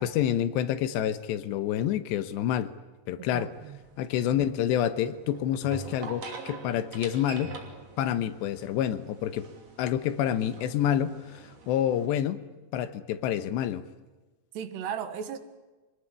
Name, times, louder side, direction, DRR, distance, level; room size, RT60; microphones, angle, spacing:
voice 1, 0.0-2.7 3.1-3.5 4.0-7.6 8.0-9.5 9.8-12.4 12.7-13.8, left 10 dB, 85° left, 3.3 m, -28 dB
voice 2, 3.3-3.8 14.6-15.4, right 8 dB, 75° right, 3.6 m, -35 dB
sound 1, 3.5-12.1, right 4 dB, 40° right, 3.6 m, -45 dB
25.5 x 20.0 x 9.7 m
omnidirectional pair, 5.0 m